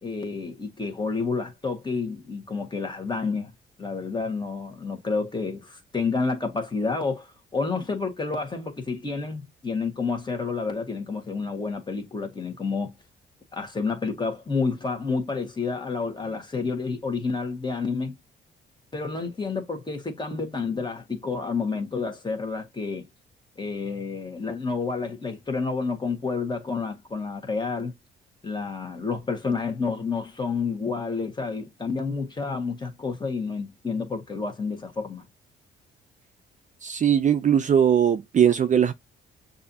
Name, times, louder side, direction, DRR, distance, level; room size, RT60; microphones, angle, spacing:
voice 1, 0.0-3.5 3.8-12.9 13.5-18.2 18.9-23.1 23.6-27.9 28.4-35.2, left 4 dB, 20° left, 1.6 m, -29 dB
voice 2, 36.8-38.9, right 8 dB, 40° right, 0.5 m, -20 dB
6.4 x 2.8 x 2.7 m
cardioid pair, 90°, 20 cm